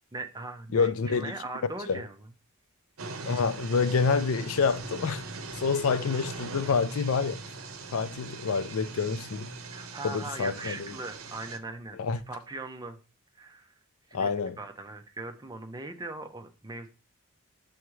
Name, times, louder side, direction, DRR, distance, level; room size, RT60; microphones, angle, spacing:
voice 1, 0.1-2.2 9.7-12.0 12.3-13.0 13.4-13.7 14.1-16.9, right 2 dB, 15° right, 0.6 m, -40 dB
voice 2, 0.7-1.3 1.9-2.0 3.3-5.2 5.5-7.4 7.9-9.5 10.0-10.9 12.0-12.2 14.1-14.6, left 5 dB, 65° left, 0.4 m, -27 dB
sound 1, 3.0-11.6, right 3 dB, 65° right, 0.8 m, -41 dB
9.0 x 3.6 x 3.1 m
head